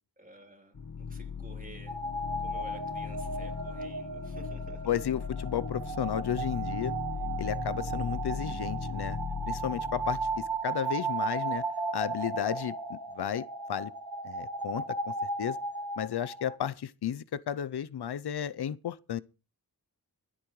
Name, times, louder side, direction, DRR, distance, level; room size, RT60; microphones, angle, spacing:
voice 1, 0.2-2.0 2.4-4.9, right 2 dB, 20° right, 3.3 m, -52 dB
sound 1, 0.7-10.6, left 6 dB, 60° left, 1.4 m, -38 dB
sound 2, 1.9-16.6, right 3 dB, 75° right, 1.5 m, -35 dB
voice 2, 4.9-6.9 7.4-9.2 9.5-11.6 11.9-13.9 14.2-15.6 16.0-19.2, left 10 dB, 85° left, 0.5 m, -33 dB
25.0 x 8.5 x 3.1 m
wide cardioid pair, 55°, 38 cm